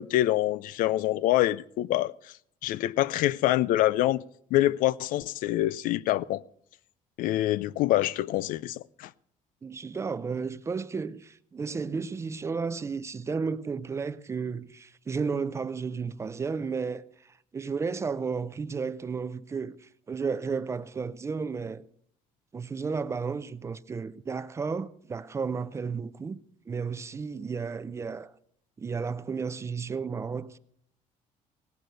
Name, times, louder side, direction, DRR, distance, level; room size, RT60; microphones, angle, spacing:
voice 1, 0.0-2.1 2.6-4.2 4.5-6.4 7.2-9.1, left 15 dB, 75° left, 0.4 m, -25 dB
voice 2, 9.6-21.8 22.5-26.4 26.7-28.3 28.8-30.6, right 5 dB, 20° right, 0.4 m, -33 dB
18.0 x 7.7 x 6.7 m
cardioid pair, 155°, 14 cm